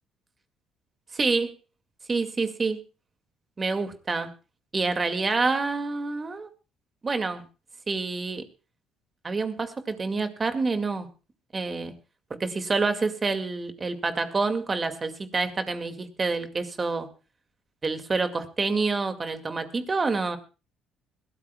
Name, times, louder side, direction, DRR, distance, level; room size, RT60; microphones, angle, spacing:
voice 1, 1.1-1.5 2.1-2.8 3.6-4.3 4.7-6.5 7.0-7.5 7.9-8.4 9.2-11.1 11.5-11.9 12.4-17.1 17.8-20.4, right 3 dB, 30° right, 8 dB, 2.2 m, -27 dB
21.5 x 16.0 x 2.3 m, 0.31 s
hypercardioid pair, 55°, 0 cm